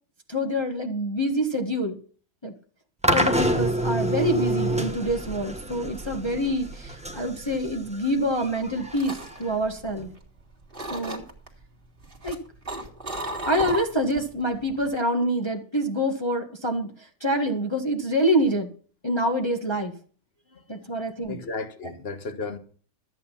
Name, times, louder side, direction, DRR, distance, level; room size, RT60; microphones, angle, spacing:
voice 1, 0.3-2.0 2.4-2.5 3.1-10.1 10.9-11.2 12.2-12.4 13.4-16.9 17.2-18.7 19.0-19.9 20.7-21.4, equal, 15° left, 1.6 m, -26 dB
sound 1, 3.0-10.1, right 1 dB, 5° right, 1.2 m, -28 dB
sound 2, 8.5-10.4 10.7-11.5 12.0-14.3 14.6-14.9, right 2 dB, 30° right, 2.4 m, -34 dB
voice 2, 21.3-22.6, left 3 dB, 35° left, 1.6 m, -34 dB
13.5 x 9.2 x 5.7 m
omnidirectional pair, 1.9 m